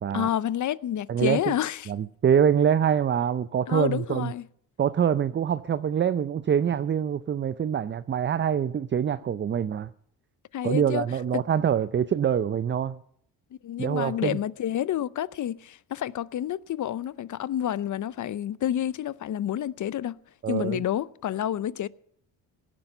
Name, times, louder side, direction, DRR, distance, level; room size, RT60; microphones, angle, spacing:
voice 1, 0.1-1.9 3.7-4.4 10.5-11.0 11.3-11.4 13.6-20.2 20.5-21.9, left 11 dB, 45° left, 0.7 m, -29 dB
voice 2, 1.1-1.4 1.9-4.3 4.8-9.9 10.6-13.0 13.8-14.4 20.4-20.8, right 8 dB, 25° right, 0.5 m, -25 dB
17.5 x 10.0 x 6.8 m
supercardioid pair, 70°, 43 cm